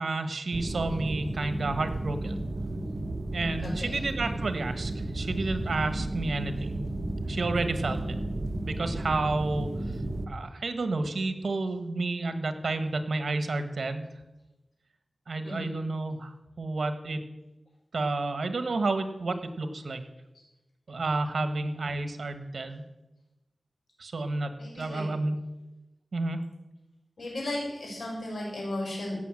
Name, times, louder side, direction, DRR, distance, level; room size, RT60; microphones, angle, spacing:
voice 1, 0.0-2.4 3.3-6.8 7.3-8.0 8.6-9.7 10.3-14.1 15.3-17.2 17.9-20.0 20.9-22.8 24.0-24.5 24.8-25.4 26.1-26.4, right 3 dB, 80° right, 9 dB, 1.4 m, -30 dB
sound 1, 0.5-10.3, right 1 dB, 50° right, 1.4 m, -33 dB
voice 2, 3.6-4.0 15.4-15.8 24.6-25.1 27.2-29.2, left 1 dB, 85° left, -3 dB, 6.3 m, -35 dB
16.5 x 6.7 x 7.7 m, 1.0 s
wide cardioid pair, 70°, 0 cm